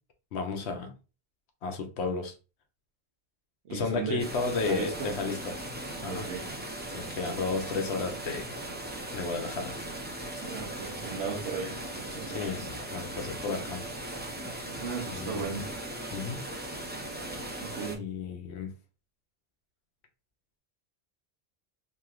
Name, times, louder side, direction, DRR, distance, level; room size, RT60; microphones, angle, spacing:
voice 1, 0.3-0.9 1.6-2.3 3.7-5.6 6.0-6.3 6.9-8.5 9.1-9.7 12.3-13.8 15.0-15.6 16.1-16.4 18.0-18.7, left 4 dB, 85° left, 0.9 m, -33 dB
voice 2, 3.6-4.2 4.6-5.1 6.0-6.5 10.4-12.7 14.7-15.7 17.6-18.0, right 5 dB, 85° right, 1.0 m, -36 dB
sound 1, 4.2-18.0, right 1 dB, 15° right, 0.3 m, -38 dB
3.0 x 2.6 x 2.4 m
omnidirectional pair, 1.1 m